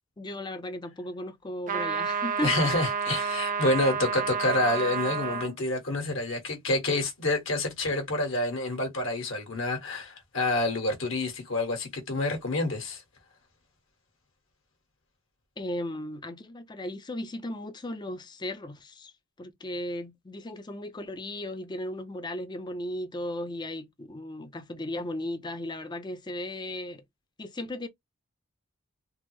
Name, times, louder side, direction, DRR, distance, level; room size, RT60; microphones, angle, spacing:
voice 1, 0.2-2.9 15.6-19.1 19.4-27.0 27.4-27.9, left 1 dB, 20° left, 0.5 m, -36 dB
sound 1, 1.7-5.5, right 6 dB, 40° right, 0.5 m, -30 dB
voice 2, 2.4-13.0, left 2 dB, 65° left, 1.3 m, -28 dB
3.4 x 2.0 x 3.1 m
head